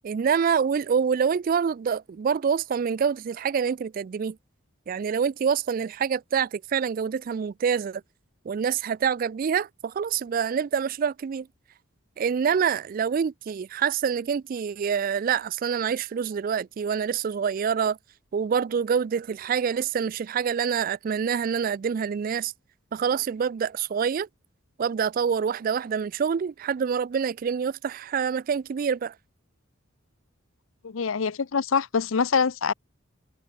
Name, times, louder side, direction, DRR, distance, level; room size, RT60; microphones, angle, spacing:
voice 1, 0.0-4.4 4.9-8.0 8.5-11.5 12.2-18.0 18.3-22.5 22.9-24.3 24.8-29.1, right 7 dB, 45° right, 0.3 m, -26 dB
voice 2, 30.8-32.7, left 5 dB, 80° left, 0.6 m, -24 dB
head